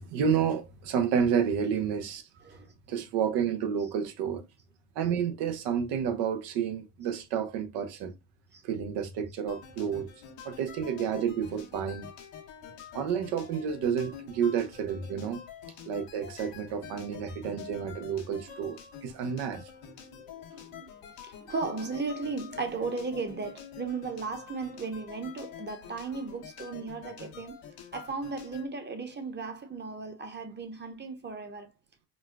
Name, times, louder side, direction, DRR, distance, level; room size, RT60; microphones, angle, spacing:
voice 1, 0.0-2.2 2.9-4.4 5.0-8.1 8.6-10.1 10.4-12.1 12.9-15.4 15.9-19.6, right 7 dB, 75° right, 0.7 m, -30 dB
sound 1, 9.5-28.7, left 8 dB, 85° left, 1.1 m, -47 dB
voice 2, 20.0-20.9 21.2-27.6 27.9-31.7, right 4 dB, 25° right, 0.9 m, -36 dB
4.1 x 2.3 x 2.2 m
supercardioid pair, 80°, 41 cm